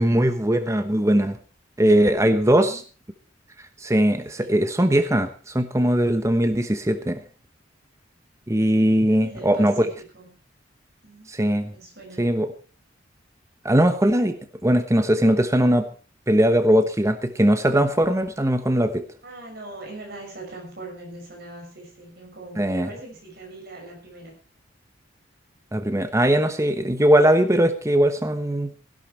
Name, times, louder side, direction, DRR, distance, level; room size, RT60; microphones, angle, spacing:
voice 1, 0.0-1.4 1.8-2.8 3.8-7.2 8.5-9.9 11.3-11.7 12.2-12.5 13.6-14.4 14.6-15.9 16.3-19.0 22.6-22.9 25.7-28.7, right 1 dB, 15° right, 9 dB, 1.0 m, -20 dB
voice 2, 2.3-2.8 4.4-4.6 6.6-7.2 9.1-9.9 10.1-10.4 11.0-11.3 11.7-12.3 19.2-24.3, right 2 dB, 55° right, 1 dB, 6.2 m, -41 dB
16.0 x 11.5 x 4.5 m, 0.36 s
head